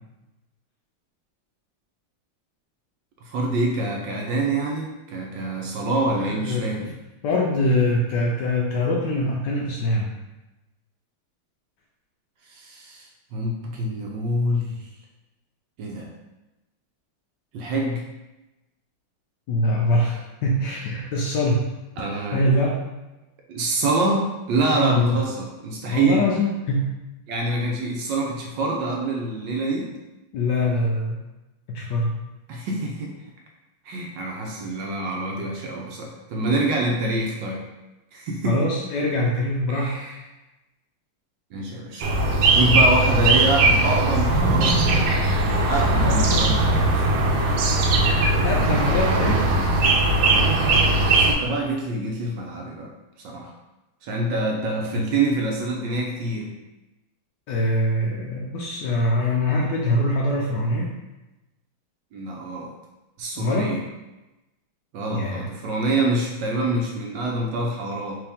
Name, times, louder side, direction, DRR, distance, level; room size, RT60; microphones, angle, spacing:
voice 1, 3.3-6.9 12.5-14.7 15.8-16.1 17.5-18.0 22.0-22.5 23.5-26.3 27.3-29.9 32.5-33.1 33.8-37.6 38.1-38.7 39.7-40.2 41.5-42.1 42.5-45.1 45.7-47.1 50.2-50.5 51.1-52.9 53.2-53.5 54.0-56.5 62.1-62.7 63.2-63.8 64.9-68.2, right 2 dB, 75° right, 0 dB, 1.2 m, -26 dB
voice 2, 6.1-6.9 7.2-10.1 19.5-21.7 22.3-22.9 24.7-25.2 25.9-26.9 30.3-31.1 31.7-32.1 38.4-40.0 48.4-49.5 57.5-60.9 63.4-63.7 65.1-65.5, left 1 dB, 75° left, -2 dB, 1.0 m, -23 dB
sound 1, 42.0-51.3, right 2 dB, 90° right, 1.6 m, -19 dB
4.7 x 2.9 x 3.5 m, 1.0 s
omnidirectional pair, 2.3 m